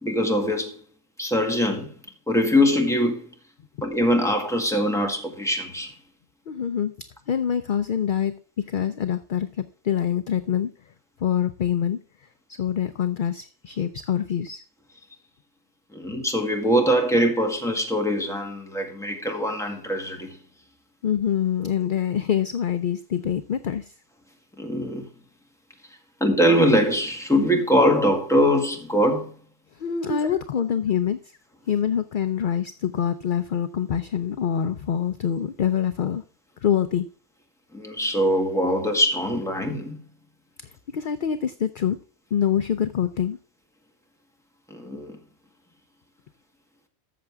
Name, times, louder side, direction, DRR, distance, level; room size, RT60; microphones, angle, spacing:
voice 1, 0.0-0.7 1.2-1.9 2.3-3.3 3.8-5.9 15.9-20.4 24.6-25.1 26.2-29.3 30.1-30.2 37.7-40.0 44.7-45.2, equal, ahead, 1.8 m, -22 dB
voice 2, 6.5-6.9 7.3-8.3 8.7-10.7 11.2-12.0 12.5-14.6 21.0-23.9 29.7-31.4 31.7-36.2 36.6-37.1 40.6-42.0 42.3-43.4, left 9 dB, 55° left, 0.7 m, -25 dB
14.0 x 6.9 x 3.5 m
omnidirectional pair, 1.2 m